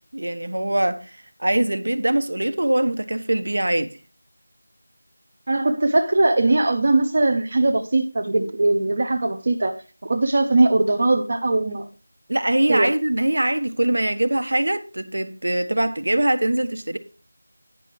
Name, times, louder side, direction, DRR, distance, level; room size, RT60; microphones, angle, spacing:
voice 1, 0.1-3.9 12.3-17.0, right 1 dB, 70° right, 1.2 m, -22 dB
voice 2, 5.5-11.9 12.7-12.9, right 2 dB, 30° right, 0.6 m, -20 dB
9.8 x 5.7 x 4.7 m
figure-of-eight pair, 180°, 0 cm